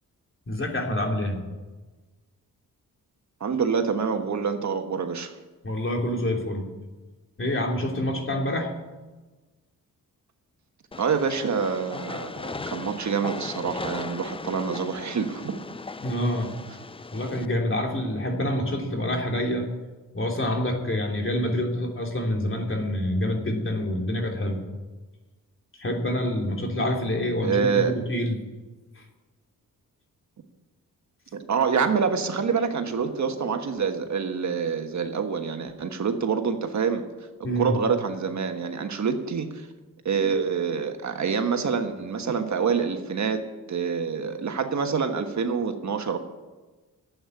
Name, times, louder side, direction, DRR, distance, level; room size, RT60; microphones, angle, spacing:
voice 1, 0.5-1.4 5.6-6.6 7.4-8.7 16.0-16.6 17.1-19.7 20.1-24.6 25.7-28.4 29.0-29.1 37.4-37.8, left 1 dB, 35° left, 1 dB, 3.0 m, -27 dB
voice 2, 3.4-5.4 11.0-15.6 27.4-27.9 31.3-37.0 37.6-39.7 40.0-43.4 43.7-46.2, right 6 dB, 55° right, 6 dB, 1.4 m, -26 dB
Train, 10.9-17.4, left 3 dB, 15° left, 0.5 m, -38 dB
12.0 x 8.4 x 9.7 m, 1.2 s
cardioid pair, 85°, 34 cm